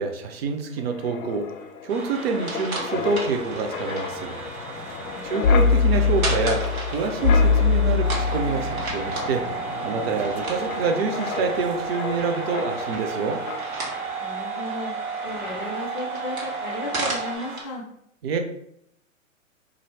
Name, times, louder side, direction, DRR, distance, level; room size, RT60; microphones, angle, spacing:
voice 1, 0.0-4.4 5.2-13.4 18.2-18.4, right 4 dB, 50° right, 5 dB, 0.5 m, -27 dB
Wind, 0.8-13.2 13.5-13.7, left 4 dB, 85° left, 0.5 m, -26 dB
sound 1, 1.9-17.6, right 2 dB, 85° right, 1.2 m, -35 dB
sound 2, 8.0-17.4, right 5 dB, 65° right, 1.2 m, -33 dB
voice 2, 14.2-14.9 15.2-17.8, left 2 dB, 20° left, -1 dB, 0.4 m, -35 dB
2.6 x 2.6 x 3.1 m, 0.74 s
hypercardioid pair, 120°, 41 cm